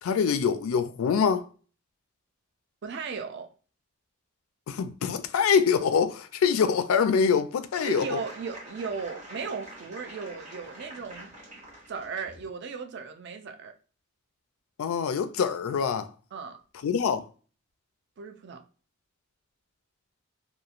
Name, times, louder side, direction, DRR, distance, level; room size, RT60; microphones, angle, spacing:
voice 1, 0.0-1.5 4.7-8.2 14.8-16.1 16.8-17.2, left 6 dB, 80° left, 0.3 m, -25 dB
voice 2, 2.8-3.5 7.8-11.3 11.9-13.7 16.3-16.6 18.2-18.7, right 5 dB, 55° right, 0.4 m, -36 dB
sound 1, 7.7-12.4, right 1 dB, 35° right, 1.0 m, -46 dB
2.9 x 2.2 x 2.4 m
head